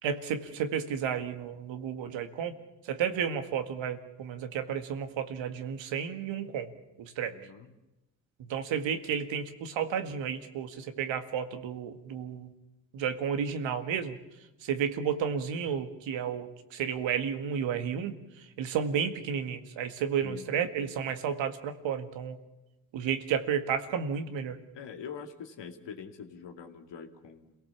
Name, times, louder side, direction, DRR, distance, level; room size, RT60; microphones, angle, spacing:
voice 1, 0.0-2.5 2.9-6.7 7.0-7.3 8.5-12.5 12.9-14.2 14.6-18.1 18.6-22.4 22.9-24.6, right 7 dB, 70° right, 7 dB, 2.1 m, -32 dB
voice 2, 7.2-7.7 20.2-20.5 24.2-24.4 24.7-27.6, left 6 dB, 60° left, 5 dB, 2.5 m, -44 dB
28.0 x 17.5 x 7.2 m, 1.0 s
hypercardioid pair, 45°, 47 cm